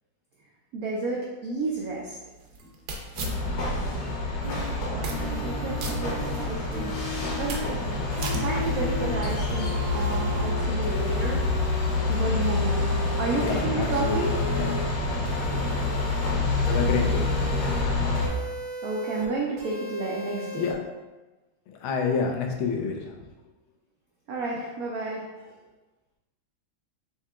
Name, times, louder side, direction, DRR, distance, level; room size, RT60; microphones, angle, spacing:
voice 1, 0.7-2.2 4.8-6.9 7.3-8.0 8.4-11.4 12.1-12.9 13.2-14.3 18.8-20.7 24.3-25.6, right 3 dB, 85° right, -2 dB, 0.7 m, -31 dB
sound 1, 1.6-3.9 4.3-4.4 4.9-5.5 5.8-6.7 7.1-9.5, right 2 dB, 65° right, 1.1 m, -38 dB
sound 2, 3.2-18.3, left 2 dB, 60° left, 1.3 m, -27 dB
sound 3, 4.4-4.7 5.1-6.4 6.7-7.7 8.1-9.2 9.5-10.5 10.8-12.0 12.4-13.4 13.8-14.9 15.2-16.3 16.6-17.8 18.1-19.3 19.6-20.7, left 1 dB, 40° right, 0.7 m, -37 dB
voice 2, 13.4-15.0 16.7-17.3 20.6-20.8 21.7-23.2, left 5 dB, 90° left, 2 dB, 1.5 m, -29 dB
4.5 x 2.8 x 3.5 m, 1.2 s
omnidirectional pair, 2.2 m